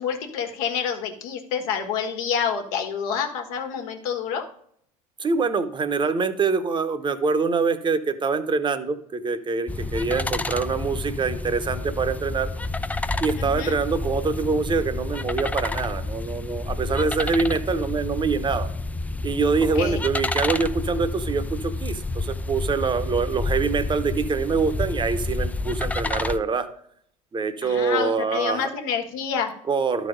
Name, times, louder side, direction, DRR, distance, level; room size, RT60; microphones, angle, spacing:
voice 1, 0.0-4.4 13.4-13.7 19.7-20.0 27.6-29.5, left 7 dB, 70° left, 5 dB, 1.4 m, -28 dB
voice 2, 5.2-12.5 13.2-18.7 19.2-26.7 27.3-28.7 29.7-30.1, right 4 dB, 25° right, 10 dB, 1.0 m, -25 dB
sound 1, 9.7-26.4, left 2 dB, 10° left, 0.4 m, -29 dB
12.0 x 4.1 x 5.2 m, 0.66 s
hypercardioid pair, 75°, 18 cm